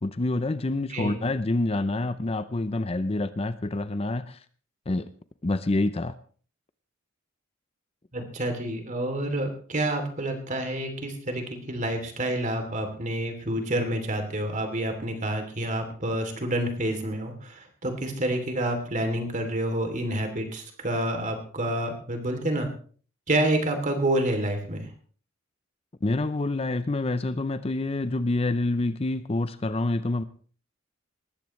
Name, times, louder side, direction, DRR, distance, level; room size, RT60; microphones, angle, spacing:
voice 1, 0.0-4.4 4.9-5.1 5.4-6.1 8.2-8.3 26.0-30.2, left 2 dB, 30° left, 0.6 m, -27 dB
voice 2, 8.1-22.7 23.3-24.9, right 1 dB, 40° right, 3.0 m, -28 dB
19.5 x 15.0 x 3.2 m
head